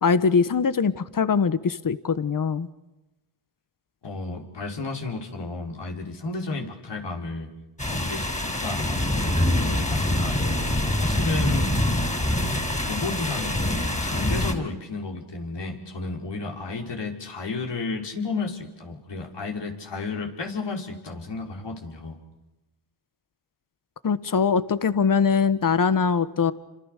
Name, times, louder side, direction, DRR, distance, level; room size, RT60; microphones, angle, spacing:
voice 1, 0.0-2.7 24.0-26.5, left 5 dB, 40° left, 14 dB, 1.4 m, -22 dB
voice 2, 4.0-7.5 7.9-10.4 10.8-11.7 12.9-22.2, left 3 dB, 60° left, 1 dB, 5.5 m, -32 dB
sound 1, 7.8-14.5, left 1 dB, 15° left, 5.2 m, -25 dB
29.5 x 26.0 x 6.7 m, 1.0 s
cardioid pair, 60°, 48 cm